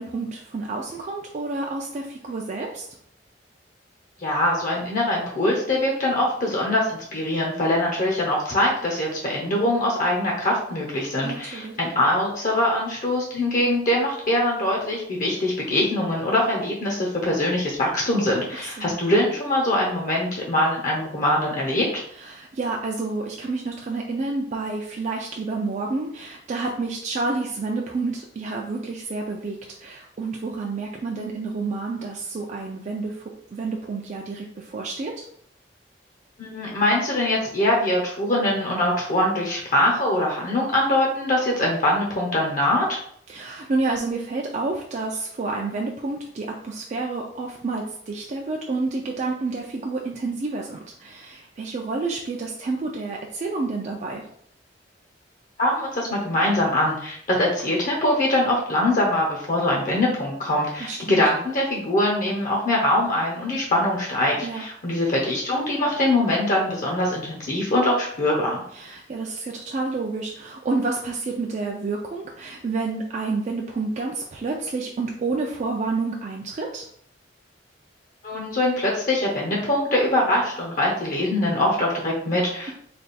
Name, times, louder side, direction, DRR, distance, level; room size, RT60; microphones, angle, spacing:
voice 1, 0.0-2.9 11.2-11.8 18.5-18.9 22.2-35.3 43.3-54.3 60.8-61.2 64.4-64.6 68.7-76.8, right 3 dB, 40° right, 0 dB, 0.4 m, -29 dB
voice 2, 4.2-22.0 36.4-43.0 55.6-68.6 78.2-82.7, left 1 dB, 50° left, -2 dB, 0.7 m, -23 dB
3.3 x 2.3 x 4.1 m, 0.66 s
head